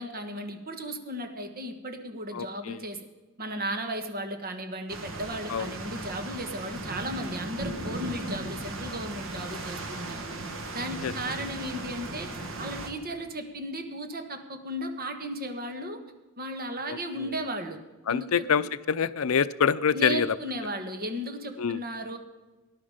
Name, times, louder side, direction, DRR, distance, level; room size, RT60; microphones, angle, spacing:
voice 1, 0.0-3.0 3.4-10.3 10.7-12.3 12.6-16.0 16.4-17.8 18.1-18.3 19.9-22.2, equal, 45° right, 6 dB, 1.6 m, -35 dB
voice 2, 2.3-2.8 5.5-5.7 11.0-11.1 16.9-17.3 18.1-20.4 21.6-21.8, left 7 dB, 75° left, 15 dB, 0.5 m, -26 dB
sound 1, 4.9-12.9, right 2 dB, 65° right, 1.7 m, -37 dB
19.0 x 11.0 x 5.1 m, 1.2 s
head